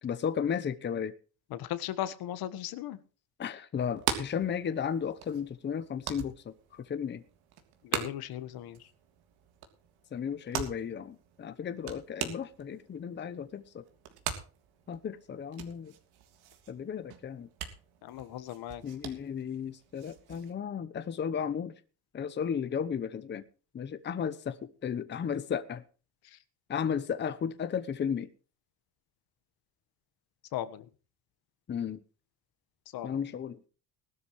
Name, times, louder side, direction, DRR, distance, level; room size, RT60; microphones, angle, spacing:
voice 1, 0.0-1.1 3.4-7.2 10.1-13.8 14.9-15.9 16.7-17.5 18.8-21.7 22.1-23.4 23.7-25.8 26.7-28.3 31.7-32.0 33.0-33.7, left 7 dB, 30° left, 0.9 m, -34 dB
voice 2, 1.5-3.0 7.9-8.8 18.0-18.8 30.5-30.8 32.9-33.2, left 12 dB, 70° left, 1.6 m, -37 dB
sound 1, 3.8-20.5, right 9 dB, 75° right, 3.3 m, -42 dB
19.5 x 12.5 x 3.2 m
cardioid pair, 150°, 38 cm